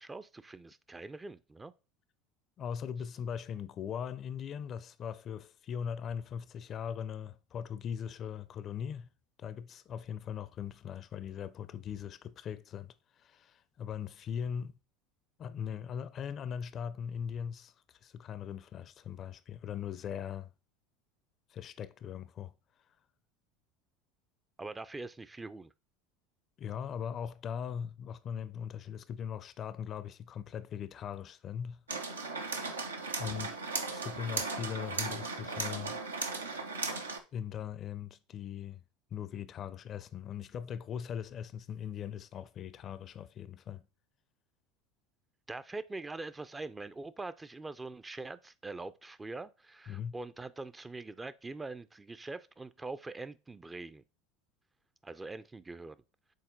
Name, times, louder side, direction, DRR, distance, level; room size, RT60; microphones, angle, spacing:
voice 1, 0.0-1.7 24.6-25.7 45.5-54.0 55.0-56.0, right 3 dB, 15° right, 0.4 m, -43 dB
voice 2, 2.6-9.1 9.4-14.7 15.4-17.7 18.0-20.5 21.5-22.5 26.6-31.8 33.2-33.6 33.9-36.0 37.3-38.8 39.1-43.8 49.9-50.2, left 8 dB, 40° left, 0.5 m, -40 dB
sound 1, 31.9-37.2, right 3 dB, 85° right, 0.7 m, -37 dB
6.6 x 4.0 x 3.8 m
figure-of-eight pair, 75°, 0 cm